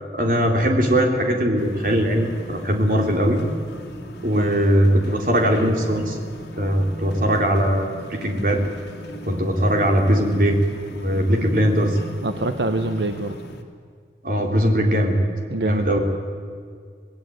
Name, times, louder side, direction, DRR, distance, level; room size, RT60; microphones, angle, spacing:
voice 1, 0.1-3.4 4.2-6.2 6.6-8.6 9.3-10.6 10.9-12.0 14.2-15.2 15.6-16.0, equal, 50° right, 2 dB, 3.8 m, -20 dB
sound 1, 1.6-13.6, equal, 65° left, 3.1 m, -37 dB
voice 2, 12.2-13.4 15.5-16.0, right 2 dB, 75° right, 7 dB, 1.1 m, -25 dB
26.5 x 19.5 x 9.5 m, 2.1 s
head